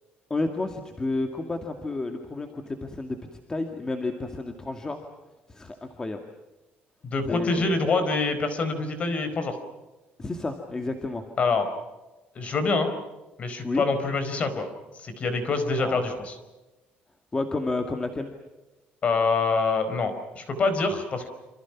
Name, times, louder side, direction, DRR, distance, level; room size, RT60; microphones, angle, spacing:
voice 1, 0.3-3.2 3.5-5.0 5.5-6.2 7.3-7.7 10.2-11.2 13.6-13.8 15.8-16.0 17.3-18.3, left 2 dB, 15° left, 5 dB, 2.1 m, -30 dB
voice 2, 7.0-9.6 11.4-11.7 12.3-12.9 13.4-14.7 14.9-16.3 19.0-21.3, left 3 dB, 35° left, 9 dB, 4.7 m, -25 dB
27.5 x 27.5 x 6.0 m, 1.1 s
cardioid pair, 145°, 4 cm